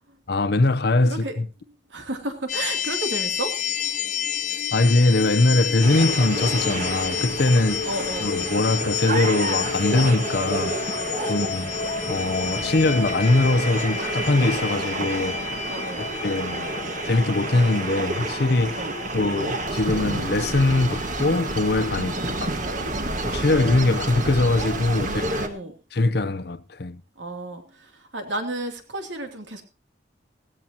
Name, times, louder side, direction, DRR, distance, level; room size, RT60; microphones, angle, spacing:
voice 1, 0.3-1.5 4.7-7.9 8.2-10.9 11.3-11.7 12.1-15.4 16.0-16.7 17.0-18.8 19.1-22.5 23.2-25.5 25.9-27.0, left 2 dB, 60° left, 0.7 m, -22 dB
voice 2, 1.1-1.4 1.9-3.5 3.8-3.9 7.8-8.4 11.2-11.6 15.7-16.1 18.8-18.9 22.0-22.8 25.0-25.7 27.2-29.6, right 1 dB, 85° right, 2.8 m, -33 dB
sound 1, 2.5-22.4, left 7 dB, 45° left, 1.1 m, -31 dB
sound 2, 5.8-25.5, right 2 dB, 45° right, 1.7 m, -30 dB
17.0 x 15.0 x 2.9 m
head